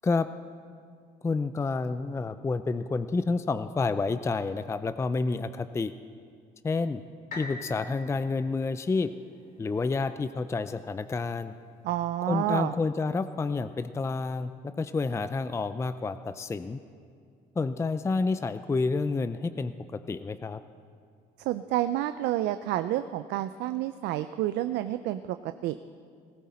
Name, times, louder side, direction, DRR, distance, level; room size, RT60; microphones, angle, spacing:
voice 1, 1.2-5.9 6.6-7.0 7.4-9.1 9.6-11.5 12.3-14.5 14.8-16.8 17.6-20.6, left 4 dB, 15° left, 11 dB, 0.4 m, -29 dB
sound 1, 7.3-11.2 11.8-11.9, left 2 dB, 55° left, 2.8 m, -46 dB
voice 2, 11.8-12.7 21.5-25.8, right 13 dB, 85° right, 11 dB, 0.5 m, -29 dB
18.5 x 15.5 x 4.3 m, 2.2 s
cardioid pair, 110°, 17 cm